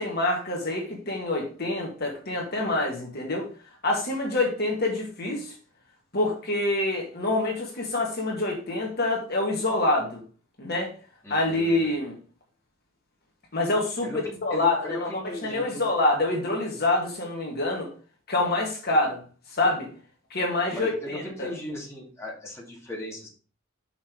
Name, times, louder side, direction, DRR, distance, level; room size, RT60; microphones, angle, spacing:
voice 1, 0.0-3.5 3.8-5.5 6.1-10.2 10.6-10.9 11.3-12.2 13.5-15.1 15.4-17.9 18.3-19.2 19.5-19.9 20.3-21.5, left 2 dB, 50° left, 0 dB, 2.0 m, -26 dB
voice 2, 11.2-12.0 14.0-15.8 20.7-23.3, left 1 dB, 15° left, -3 dB, 2.4 m, -37 dB
6.1 x 5.7 x 4.6 m, 0.38 s
head